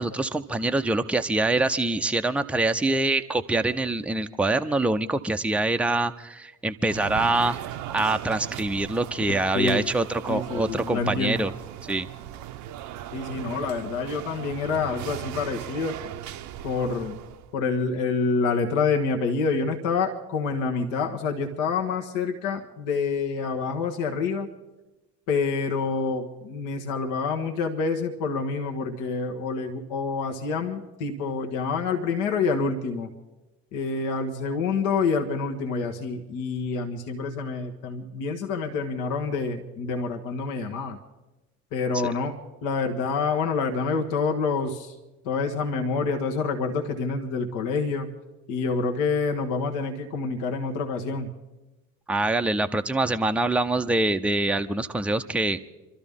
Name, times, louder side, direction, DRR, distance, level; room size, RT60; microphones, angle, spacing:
voice 1, 0.0-7.6 7.9-11.5 11.8-12.1 52.1-55.6, right 2 dB, 5° right, 7 dB, 0.7 m, -25 dB
sound 1, 6.8-17.5, right 12 dB, 50° right, 0.7 m, -38 dB
voice 2, 9.3-9.9 10.3-11.5 13.1-16.0 16.6-17.2 17.5-24.5 25.3-33.1 33.7-41.0 41.7-42.3 42.6-44.9 45.2-48.1 48.5-51.3, left 4 dB, 55° left, 3 dB, 1.4 m, -27 dB
27.0 x 12.5 x 3.6 m, 1.1 s
figure-of-eight pair, 55°, 38 cm